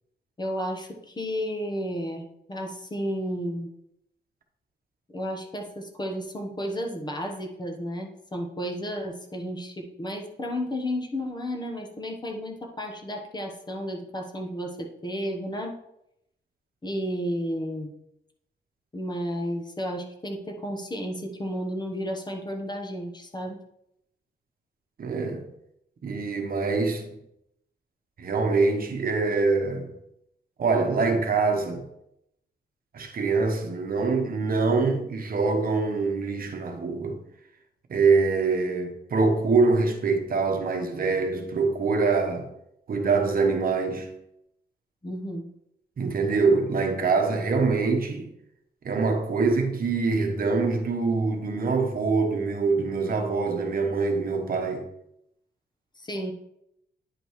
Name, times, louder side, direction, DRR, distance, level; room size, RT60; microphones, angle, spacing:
voice 1, 0.4-3.7 5.1-15.7 16.8-17.9 18.9-23.6 45.0-45.4 56.0-56.3, equal, 25° left, 1.0 m, -32 dB
voice 2, 25.0-25.4 26.0-27.0 28.2-29.9 30.6-31.8 32.9-37.2 37.9-42.5 42.9-44.1 46.0-48.3 48.8-54.9, right 4 dB, 55° right, 1.1 m, -24 dB
9.7 x 5.2 x 3.1 m
wide cardioid pair, 130°, 18 cm